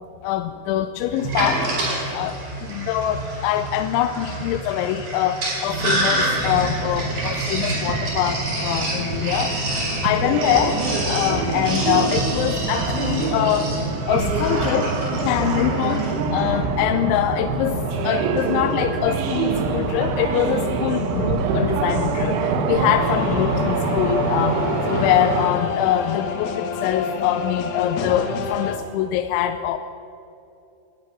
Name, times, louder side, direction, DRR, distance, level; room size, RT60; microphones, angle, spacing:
voice 1, 0.2-1.7 2.1-2.4 2.7-9.6 10.0-13.7 14.1-29.8, left 11 dB, 90° left, 9 dB, 3.0 m, -24 dB
Sink (filling or washing), 1.1-16.2, right 1 dB, 40° right, 6.0 m, -28 dB
sound 1, 5.7-25.5, right 4 dB, 90° right, 3.7 m, -25 dB
sound 2, 23.0-28.8, left 5 dB, 70° left, 2.5 m, -28 dB
19.0 x 12.0 x 6.0 m, 2.7 s
omnidirectional pair, 5.3 m